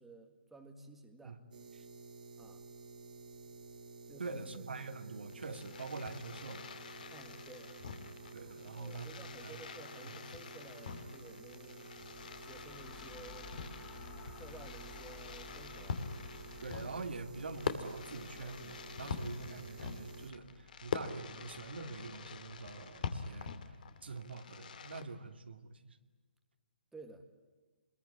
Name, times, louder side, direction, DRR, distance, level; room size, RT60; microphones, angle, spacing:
voice 1, 0.0-1.4 2.4-2.6 4.1-4.6 7.1-7.8 8.6-11.9 12.4-13.5 14.3-16.0 26.9-27.2, right 2 dB, 5° right, 4 dB, 1.7 m, -54 dB
sound 1, 1.5-20.3, right 3 dB, 50° right, 3.0 m, -52 dB
voice 2, 4.2-6.7 8.3-9.1 9.4-9.6 10.1-10.2 16.6-23.5 24.0-25.8, right 4 dB, 80° right, 6 dB, 2.7 m, -45 dB
Fireworks, 5.2-25.0, left 6 dB, 50° left, 2.8 m, -45 dB
sound 2, 11.9-23.6, left 3 dB, 20° left, 2.2 m, -56 dB
25.5 x 22.0 x 9.7 m, 1.3 s
hypercardioid pair, 160°, 6 cm